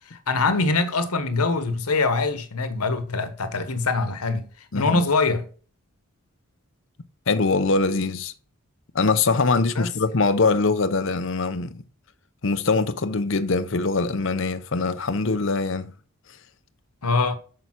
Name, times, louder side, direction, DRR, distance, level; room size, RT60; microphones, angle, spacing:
voice 1, 0.1-4.5 4.7-5.5 9.7-9.9 17.0-17.4, left 3 dB, 90° left, 1.3 m, -23 dB
voice 2, 7.3-8.3 8.9-11.8 12.4-15.9, left 3 dB, 55° left, 0.7 m, -23 dB
6.9 x 6.8 x 6.0 m
head